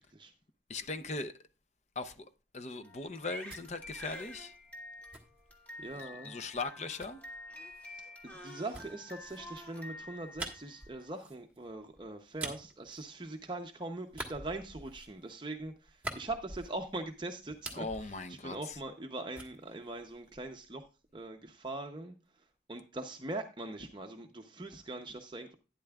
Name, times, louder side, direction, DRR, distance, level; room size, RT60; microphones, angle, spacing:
voice 1, 0.7-1.3 2.0-2.3 2.5-4.5 6.0-7.2 17.7-18.8, left 3 dB, 40° left, 0.6 m, -39 dB
Crying sobbing, 2.8-11.0, left 1 dB, 10° left, 1.6 m, -48 dB
sound 1, 3.1-6.1 7.0-13.7 14.1-17.1 17.4-19.1 19.3-20.7, right 2 dB, 10° right, 1.4 m, -47 dB
voice 2, 5.8-6.4 8.2-20.8 21.1-22.1 22.7-25.6, right 2 dB, 25° right, 0.7 m, -42 dB
12.0 x 9.8 x 2.3 m
head